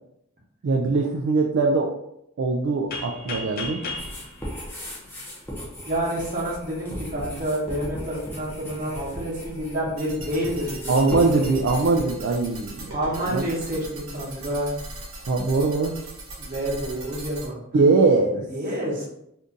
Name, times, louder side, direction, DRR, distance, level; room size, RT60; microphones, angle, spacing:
voice 1, 0.6-1.9 2.4-3.8 10.9-12.9 13.2-13.4 15.3-16.0 17.7-18.4, right 3 dB, 55° right, 1 dB, 0.3 m, -21 dB
sound 1, 2.9-5.7, left 2 dB, 45° left, 0.5 m, -35 dB
sound 2, 4.0-12.0, equal, 10° left, 0.7 m, -37 dB
voice 2, 5.8-11.0 12.9-14.7 16.4-17.6 18.3-19.1, right 1 dB, 40° right, -5 dB, 1.0 m, -28 dB
sound 3, 10.0-17.5, right 2 dB, 75° right, 1.0 m, -39 dB
2.7 x 2.5 x 3.7 m, 0.79 s
head